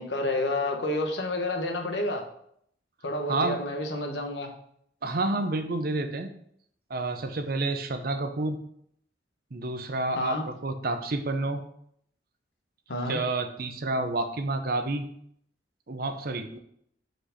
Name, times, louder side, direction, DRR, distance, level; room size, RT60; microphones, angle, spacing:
voice 1, 0.0-2.3 3.0-4.5 10.1-10.4 12.9-13.2, left 1 dB, 70° left, 3 dB, 1.1 m, -29 dB
voice 2, 5.0-6.3 6.9-8.6 9.5-11.6 13.1-15.1 15.9-16.6, right 2 dB, 55° right, 7 dB, 0.7 m, -29 dB
4.9 x 4.5 x 5.0 m, 0.69 s
head